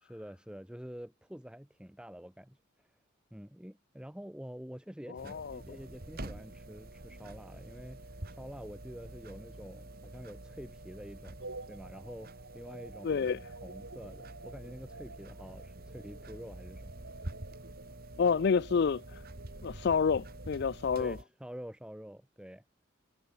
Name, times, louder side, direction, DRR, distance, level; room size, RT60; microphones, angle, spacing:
voice 1, 0.0-2.9 3.3-13.3 13.6-16.9 21.0-22.6, equal, 5° right, 0.8 m, -47 dB
voice 2, 5.1-5.6 13.0-13.4 18.2-19.2 19.6-21.2, left 6 dB, 50° left, 0.4 m, -29 dB
sound 1, 5.2-21.2, right 1 dB, 45° right, 1.8 m, -47 dB
sound 2, 11.4-20.6, right 3 dB, 65° right, 3.1 m, -51 dB
head